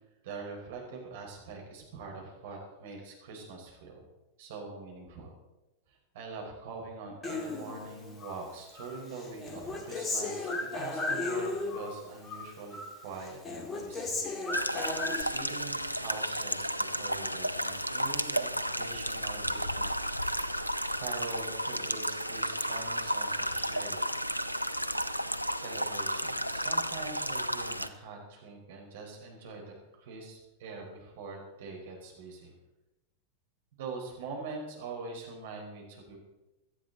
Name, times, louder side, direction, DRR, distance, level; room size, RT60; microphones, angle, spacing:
voice 1, 0.2-4.0 4.4-5.3 5.9-14.3 14.7-19.9 20.5-24.0 25.6-32.5 33.8-36.3, right 4 dB, 55° right, 0 dB, 5.0 m, -43 dB
Human voice, 7.2-8.4 8.8-12.0 12.2-13.0 13.2-15.2, left 3 dB, 20° left, 2.3 m, -35 dB
sound 1, 14.5-27.9, equal, 90° left, 0.6 m, -33 dB
17.5 x 12.5 x 4.2 m, 0.99 s
figure-of-eight pair, 90°, 0 cm